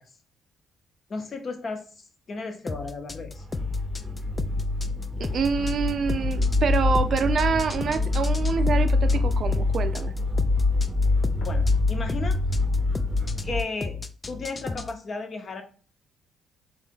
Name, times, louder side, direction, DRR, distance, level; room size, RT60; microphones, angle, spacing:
voice 1, 1.1-3.4 11.4-12.4 13.4-14.0 14.3-15.6, left 3 dB, 45° left, 0.8 m, -34 dB
sound 1, 2.7-15.0, left 4 dB, 30° left, 0.3 m, -35 dB
sound 2, 3.3-13.6, left 3 dB, 10° right, 0.8 m, -25 dB
voice 2, 5.2-10.1, right 6 dB, 60° right, 0.4 m, -26 dB
sound 3, 6.9-8.0 9.2-10.4 11.4-12.7, equal, 90° left, 1.2 m, -41 dB
3.7 x 2.8 x 3.6 m
supercardioid pair, 70°, 0 cm